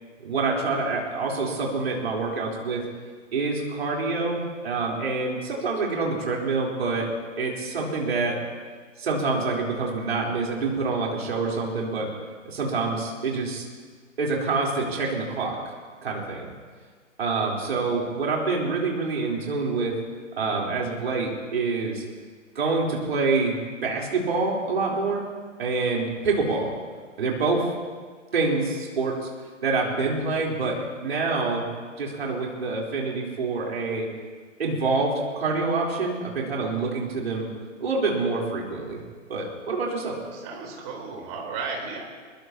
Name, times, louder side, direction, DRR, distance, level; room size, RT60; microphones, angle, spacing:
voice 1, 0.2-2.8 3.3-7.1 7.4-8.4 9.0-12.1 12.4-13.6 14.2-15.6 16.0-16.5 17.2-20.0 20.4-22.0 22.5-25.2 25.6-26.7 27.2-27.7 28.3-29.2 29.6-31.6 32.0-34.1 34.6-37.5 37.8-39.0 39.3-40.2, right 3 dB, 50° right, -2 dB, 4.1 m, -26 dB
voice 2, 40.3-42.0, right 4 dB, 25° right, -1 dB, 4.0 m, -34 dB
21.5 x 21.5 x 3.0 m, 1.5 s
figure-of-eight pair, 130°, 39 cm